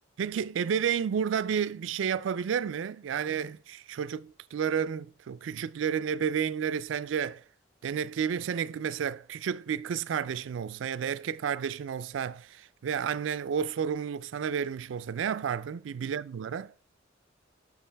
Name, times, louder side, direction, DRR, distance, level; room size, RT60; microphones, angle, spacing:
voice 1, 0.2-7.4 7.8-16.7, right 7 dB, 75° right, 0.4 m, -31 dB
8.4 x 6.0 x 3.3 m
head